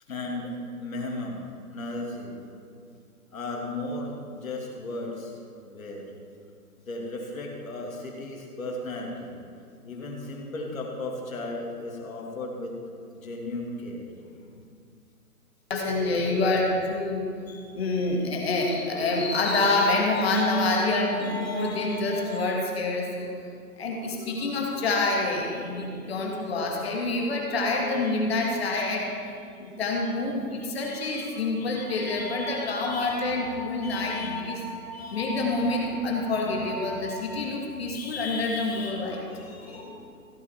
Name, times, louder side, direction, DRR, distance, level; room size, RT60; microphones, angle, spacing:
voice 1, 0.1-2.4 3.3-5.4 5.6-6.1 6.9-9.3 9.8-12.8 13.1-14.7, left 2 dB, 60° left, -1 dB, 2.8 m, -35 dB
voice 2, 15.7-23.3 23.8-40.1, left 2 dB, 40° left, 0 dB, 1.9 m, -27 dB
15.5 x 8.5 x 4.5 m, 2.3 s
hypercardioid pair, 165°, 47 cm